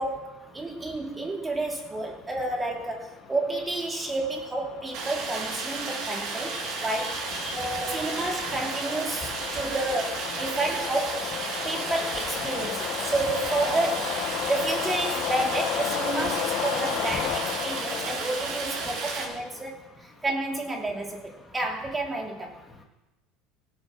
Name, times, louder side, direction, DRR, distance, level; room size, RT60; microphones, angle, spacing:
voice 1, 0.0-7.3 7.9-11.3 11.6-14.2 14.5-22.5, right 2 dB, 15° right, 1 dB, 2.6 m, -30 dB
sound 1, 3.1-19.6, left 12 dB, 60° left, 1.0 m, -34 dB
Stream, 4.9-19.2, right 4 dB, 65° right, 4.2 m, -33 dB
voice 2, 7.0-8.6 13.7-14.1 14.4-14.5, left 1 dB, 15° left, 0 dB, 2.2 m, -36 dB
16.5 x 8.4 x 6.0 m, 0.99 s
supercardioid pair, 110°, 0 cm